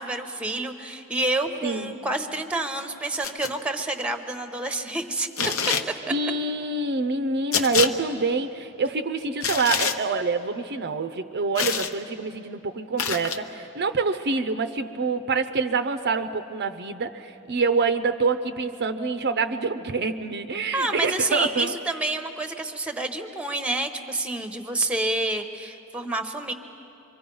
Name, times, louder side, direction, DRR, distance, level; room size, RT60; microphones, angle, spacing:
voice 1, 0.0-5.3 20.7-26.5, right 2 dB, 5° right, 7 dB, 0.9 m, -28 dB
voice 2, 1.6-1.9 5.4-5.5 6.1-21.7, right 4 dB, 50° right, 8 dB, 0.6 m, -26 dB
sound 1, 3.2-3.5 5.4-5.9 7.5-7.9 9.4-10.0 11.6-11.9 13.0-13.4, left 6 dB, 65° left, 0.9 m, -25 dB
25.5 x 24.0 x 5.5 m, 2.9 s
head